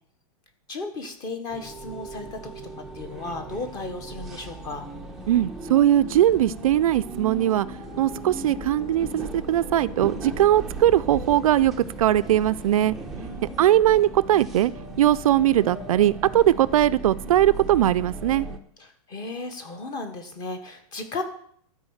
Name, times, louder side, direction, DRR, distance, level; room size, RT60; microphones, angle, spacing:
voice 1, 0.7-4.9 13.1-13.8 18.8-21.2, left 3 dB, 20° left, 7 dB, 1.3 m, -35 dB
sound 1, 1.5-18.6, right 2 dB, ahead, 0.6 m, -38 dB
voice 2, 5.3-7.7 8.0-11.7 12.0-13.0 13.6-14.7 15.0-18.5, right 12 dB, 65° right, 15 dB, 0.4 m, -20 dB
Bowed string instrument, 7.2-11.9, left 9 dB, 65° left, 4.6 m, -44 dB
12.5 x 4.9 x 7.2 m, 0.64 s
hypercardioid pair, 165°, 19 cm